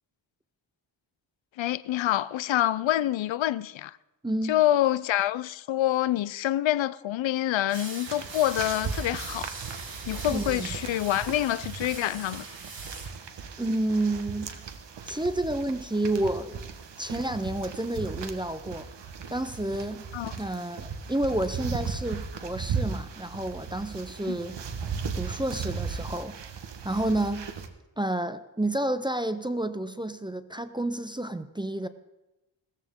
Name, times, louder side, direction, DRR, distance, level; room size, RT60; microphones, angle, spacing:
voice 1, 1.6-4.0 4.5-9.5 10.1-12.5 20.1-20.3 24.3-24.4, left 13 dB, 75° left, 0.5 m, -26 dB
voice 2, 4.2-4.6 10.3-10.7 13.6-14.5 15.1-16.6 17.0-18.9 19.3-20.0 20.4-24.6 25.1-26.4 26.8-27.5 28.0-31.9, right 1 dB, 10° right, 0.4 m, -30 dB
sound 1, 7.7-13.1, right 3 dB, 50° right, 2.6 m, -42 dB
sound 2, 8.1-27.7, right 6 dB, 65° right, 1.2 m, -37 dB
17.5 x 14.0 x 3.6 m
wide cardioid pair, 180°, 46 cm